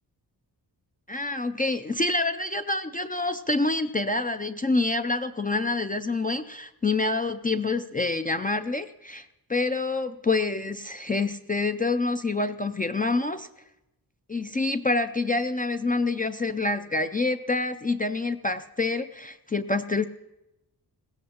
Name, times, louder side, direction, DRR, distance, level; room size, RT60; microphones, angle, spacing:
voice 1, 1.1-13.5 14.3-20.0, left 3 dB, 20° left, 8 dB, 0.4 m, -27 dB
21.0 x 16.5 x 2.9 m, 0.94 s
wide cardioid pair, 130°, 41 cm